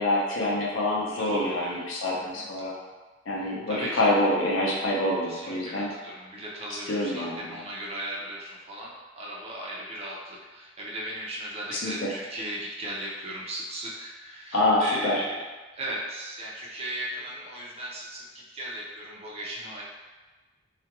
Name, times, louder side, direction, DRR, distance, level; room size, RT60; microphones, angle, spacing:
voice 1, 0.0-2.8 3.3-5.9 6.9-7.5 11.7-12.1 14.5-15.2, left 1 dB, 75° left, -4 dB, 0.6 m, -26 dB
voice 2, 1.2-1.8 2.2-2.4 3.4-4.1 5.2-15.4 15.7-19.8, right 1 dB, 30° right, -4 dB, 0.5 m, -37 dB
2.4 x 2.1 x 2.9 m, 1.3 s
head